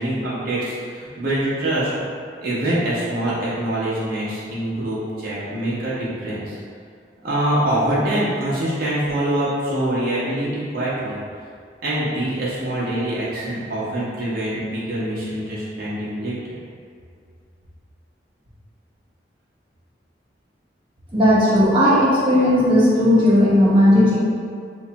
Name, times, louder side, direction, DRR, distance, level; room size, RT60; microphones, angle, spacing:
voice 1, 0.0-1.9 2.4-6.6 7.2-11.2 11.8-16.6, right 1 dB, 55° right, -9 dB, 0.8 m, -24 dB
voice 2, 21.1-24.2, left 1 dB, 30° right, -9 dB, 1.0 m, -15 dB
3.1 x 2.2 x 3.9 m, 2.2 s
head